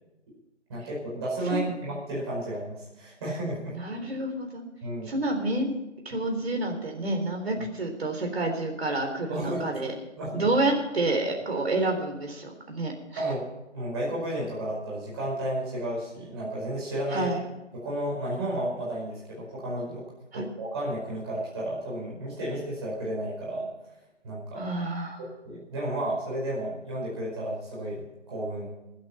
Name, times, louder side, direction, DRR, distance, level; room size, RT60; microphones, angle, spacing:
voice 1, 0.7-3.7 4.8-5.1 9.3-9.6 10.2-10.5 13.2-13.4 13.7-17.3 17.7-20.0 20.3-23.7 24.2-24.7 25.2-28.7, right 1 dB, 20° right, -5 dB, 5.1 m, -32 dB
voice 2, 3.7-4.6 5.1-5.7 6.1-9.9 10.3-13.2 17.1-17.4 20.3-20.4 24.6-25.2, right 2 dB, 55° right, 3 dB, 3.7 m, -29 dB
23.0 x 8.9 x 4.4 m, 0.99 s
figure-of-eight pair, 160°, 36 cm